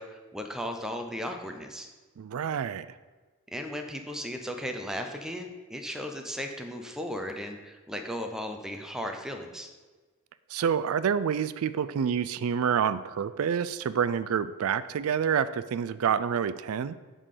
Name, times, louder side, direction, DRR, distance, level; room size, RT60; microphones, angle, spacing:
voice 1, 0.0-1.9 3.5-9.7, equal, 5° right, 4 dB, 0.7 m, -36 dB
voice 2, 2.2-2.9 10.5-17.0, right 7 dB, 85° right, 15 dB, 0.4 m, -28 dB
8.9 x 3.8 x 6.6 m, 1.3 s
head